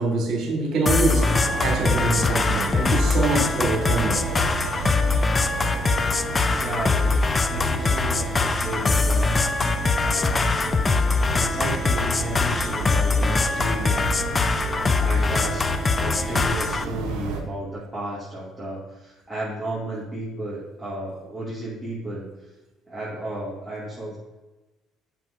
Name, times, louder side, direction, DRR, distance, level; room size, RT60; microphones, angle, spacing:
voice 1, 0.0-1.3 1.6-4.2, right 3 dB, 60° right, 1 dB, 2.0 m, -24 dB
sound 1, 0.9-16.9, left 4 dB, 25° left, 0.4 m, -23 dB
sound 2, 1.0-17.4, right 5 dB, 85° right, 1.0 m, -32 dB
voice 2, 6.5-9.4 10.0-10.5 11.3-14.1 15.0-15.7 16.0-22.3 22.9-24.2, right 1 dB, 10° right, -8 dB, 2.3 m, -33 dB
7.5 x 6.1 x 2.6 m, 1.1 s
supercardioid pair, 80°, 0 cm